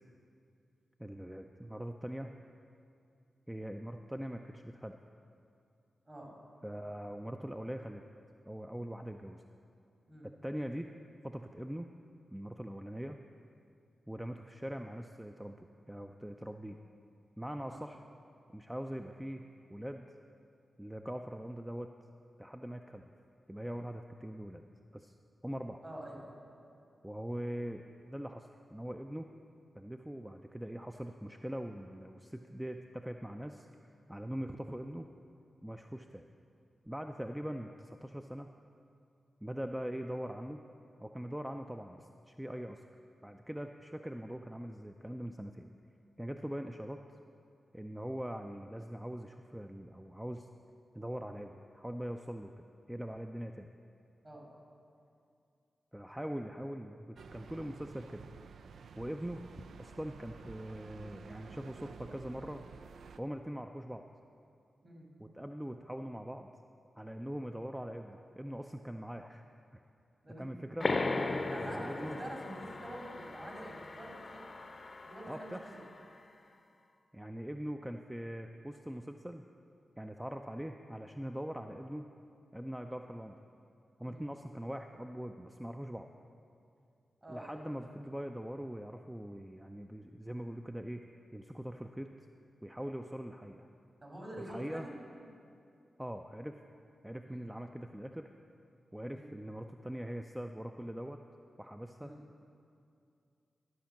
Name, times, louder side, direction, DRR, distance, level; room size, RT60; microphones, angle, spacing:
voice 1, 1.0-2.3 3.5-5.0 6.6-8.0 8.5-9.4 10.2-10.9 11.2-11.9 12.3-13.2 14.1-16.8 17.4-18.0 18.5-19.4 19.7-20.1 20.8-21.9 22.4-23.1 23.5-24.6 24.9-25.1 25.4-25.8 27.0-29.3 29.8-35.1 35.6-36.2 36.9-38.5 39.4-40.6 41.0-42.8 43.2-45.7 46.2-47.0 47.7-50.5 50.9-53.7 55.9-58.3 59.0-62.7 63.2-64.0 65.2-66.5 67.0-69.4 69.7-69.8 70.4-70.9 71.6-72.2 75.3-75.6 77.1-79.4 80.0-82.0 82.5-83.4 84.0-86.1 87.3-91.0 91.3-92.1 92.6-93.7 94.4-94.9 96.0-96.6 97.0-98.3 98.9-101.2 101.6-102.1, equal, 10° right, 5 dB, 0.5 m, -42 dB
voice 2, 25.8-26.4 54.2-54.5 64.8-65.1 70.2-70.5 71.5-74.5 75.1-75.8 84.0-84.2 87.2-87.8 94.0-95.0 97.2-97.4 99.1-99.3 102.0-102.2, right 1 dB, 40° right, -1 dB, 3.0 m, -46 dB
sound 1, 57.2-63.2, right 6 dB, 80° right, 0.3 m, -52 dB
sound 2, 70.8-76.0, left 3 dB, 50° left, 0.7 m, -37 dB
13.0 x 5.0 x 7.2 m, 2.5 s
supercardioid pair, 40°, 0 cm